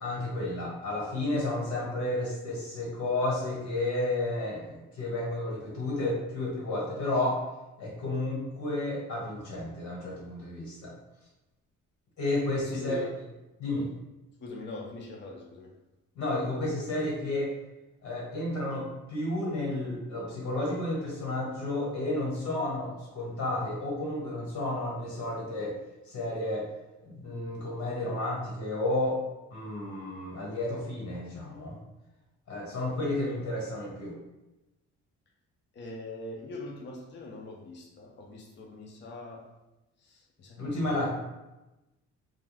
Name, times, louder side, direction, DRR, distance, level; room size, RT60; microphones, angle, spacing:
voice 1, 0.0-7.4 7.8-10.9 12.2-13.0 13.6-13.8 16.1-17.5 18.0-25.8 26.1-26.7 27.1-29.2 29.5-31.7 32.5-34.1 40.6-41.1, left 2 dB, 70° left, -3 dB, 1.3 m, -32 dB
voice 2, 12.6-13.1 14.4-15.7 35.7-39.5 40.0-41.1, left 2 dB, 40° left, 0 dB, 0.5 m, -42 dB
2.3 x 2.3 x 3.2 m, 1.0 s
cardioid pair, 90°, 30 cm